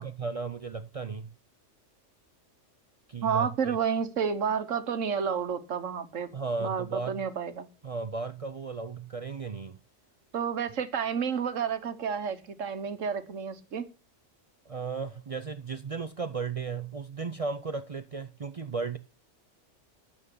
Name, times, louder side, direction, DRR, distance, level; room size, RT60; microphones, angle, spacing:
voice 1, 0.0-1.3 3.1-3.8 6.3-7.2 7.8-9.8 14.7-19.0, right 4 dB, 45° right, 0.5 m, -35 dB
voice 2, 3.2-6.3 6.6-7.7 10.3-13.9, right 7 dB, 85° right, 1.5 m, -30 dB
9.0 x 7.1 x 8.5 m
omnidirectional pair, 1.3 m